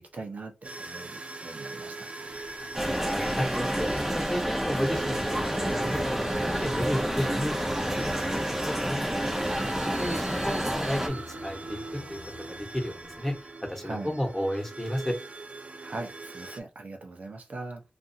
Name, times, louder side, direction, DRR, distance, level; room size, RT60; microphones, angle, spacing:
voice 1, 0.0-2.1 13.8-14.2 15.8-17.8, right 3 dB, 75° right, 0.7 m, -40 dB
sound 1, 0.6-16.6, right 3 dB, 50° right, 0.4 m, -41 dB
Singing, 2.1-13.5, left 3 dB, 70° left, 0.9 m, -46 dB
voice 2, 2.6-3.9 4.1-7.5 8.0-8.2 8.5-11.8 12.1-12.2 12.5-13.3 13.6-15.1, equal, 10° left, 1.1 m, -33 dB
sound 2, 2.7-11.1, equal, 10° right, 0.6 m, -29 dB
2.6 x 2.4 x 2.7 m
cardioid pair, 50°, 3 cm